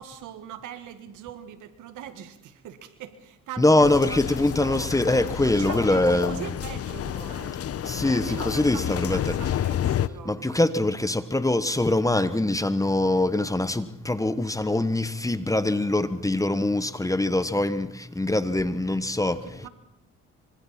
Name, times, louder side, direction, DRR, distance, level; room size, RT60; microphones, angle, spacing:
voice 1, 0.0-5.0 5.4-7.6 8.1-10.7 19.4-19.7, right 10 dB, 85° right, 2.0 m, -41 dB
voice 2, 3.6-6.4 7.8-9.4 10.2-19.6, left 2 dB, 10° left, 1.1 m, -23 dB
sound 1, 3.8-10.1, left 10 dB, 50° left, 0.8 m, -30 dB
25.5 x 24.5 x 4.4 m
cardioid pair, 90°, 30 cm